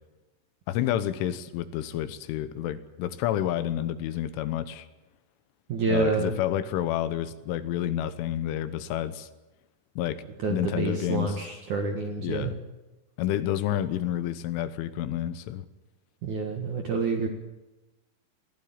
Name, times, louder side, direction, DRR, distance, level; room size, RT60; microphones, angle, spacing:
voice 1, 0.7-4.9 5.9-9.3 10.0-10.2 10.5-11.4 12.2-12.6 13.2-15.7, left 11 dB, 80° left, 12 dB, 3.4 m, -29 dB
voice 2, 5.7-6.4 10.4-12.5 16.2-17.3, right 4 dB, 60° right, 3 dB, 2.1 m, -28 dB
21.5 x 15.5 x 8.8 m, 1.1 s
omnidirectional pair, 5.7 m